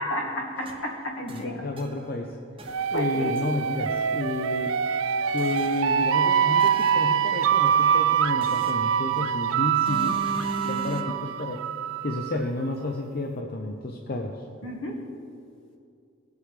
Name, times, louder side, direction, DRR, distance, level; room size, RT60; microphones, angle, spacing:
voice 1, 0.0-1.6 2.9-3.4 10.6-11.0 14.6-15.1, left 1 dB, 70° left, 1 dB, 1.8 m, -32 dB
sound 1, 0.6-2.2 2.6-3.5 5.4-6.0 6.6-7.4 8.4-9.3 9.9-11.0, right 2 dB, 25° right, 0.8 m, -39 dB
voice 2, 1.3-2.4 2.9-4.7 5.3-10.2 10.5-11.6 12.0-14.4, left 2 dB, 45° left, 1 dB, 0.7 m, -31 dB
sound 2, 2.7-12.3, right 8 dB, 80° right, 0.4 m, -24 dB
19.5 x 8.3 x 3.4 m, 2.4 s
head